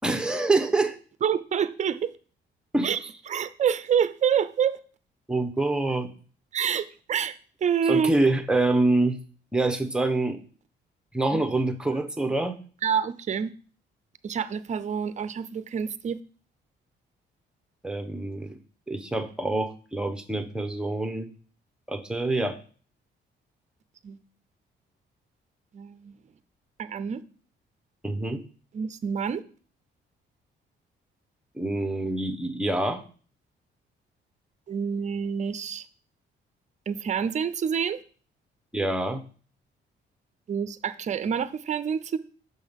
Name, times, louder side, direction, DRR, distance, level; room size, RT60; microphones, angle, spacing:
voice 1, 0.0-1.0 2.7-2.9 5.3-6.1 7.9-9.2 9.5-10.4 11.1-12.6 17.8-18.5 18.9-21.3 21.9-22.6 28.0-28.4 31.6-33.0 38.7-39.2, right 2 dB, 5° right, 7 dB, 0.8 m, -26 dB
voice 2, 1.2-2.1 2.8-3.0 3.3-4.8 6.5-7.3 7.6-8.1 11.3-11.4 12.8-13.5 14.2-16.2 24.0-24.2 25.7-26.1 26.8-27.2 28.7-29.4 34.7-35.9 36.9-38.0 40.5-42.2, right 7 dB, 35° right, 14 dB, 0.5 m, -27 dB
6.3 x 5.4 x 3.5 m, 0.41 s
cardioid pair, 90°, 20 cm